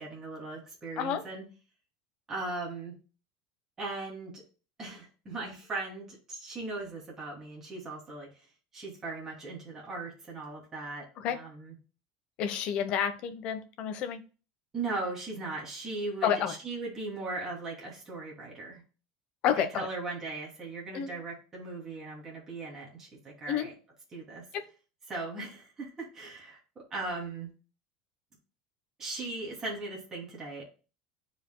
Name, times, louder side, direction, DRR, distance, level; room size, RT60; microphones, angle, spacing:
voice 1, 0.0-1.4 2.3-2.9 3.8-4.4 4.8-8.3 8.7-11.7 14.7-18.8 19.6-23.7 24.1-24.4 25.1-27.5 29.0-30.6, right 3 dB, 15° right, -2 dB, 2.9 m, -38 dB
voice 2, 12.4-14.2 16.2-16.5 19.4-19.9 20.9-21.1 23.5-23.7, left 9 dB, 35° left, 8 dB, 1.0 m, -29 dB
11.5 x 5.2 x 2.3 m, 0.34 s
cardioid pair, 180°, 3 cm